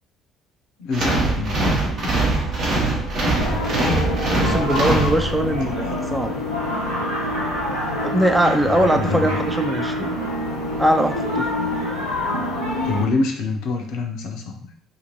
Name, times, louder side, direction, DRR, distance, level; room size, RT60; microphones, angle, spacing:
voice 1, 0.8-1.5 8.7-9.3 12.9-14.6, left 3 dB, 65° left, 3 dB, 0.5 m, -25 dB
sound 1, 0.9-5.7, right 2 dB, 55° right, 0.9 m, -22 dB
Wind instrument woodwind instrument, 2.2-5.6, left 1 dB, 75° right, 1.0 m, -40 dB
sound 2, 3.4-13.1, left 1 dB, 90° right, 0.7 m, -26 dB
voice 2, 4.4-5.7 6.1-6.4 8.0-10.1 10.8-11.5, right 1 dB, 15° right, 6 dB, 0.4 m, -21 dB
2.6 x 2.5 x 3.0 m, 0.63 s
figure-of-eight pair, 50°, 0 cm